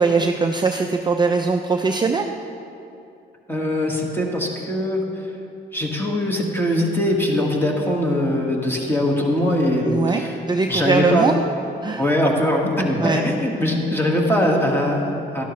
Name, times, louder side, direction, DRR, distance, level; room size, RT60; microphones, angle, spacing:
voice 1, 0.0-2.3 9.8-11.4 11.8-12.0 13.0-13.2, right 4 dB, 20° right, 4 dB, 0.5 m, -21 dB
voice 2, 3.5-5.3 5.7-10.4 10.7-11.3 12.0-15.4, left 1 dB, 10° left, 0 dB, 1.7 m, -21 dB
12.0 x 11.5 x 3.2 m, 2.7 s
cardioid pair, 90°, 20 cm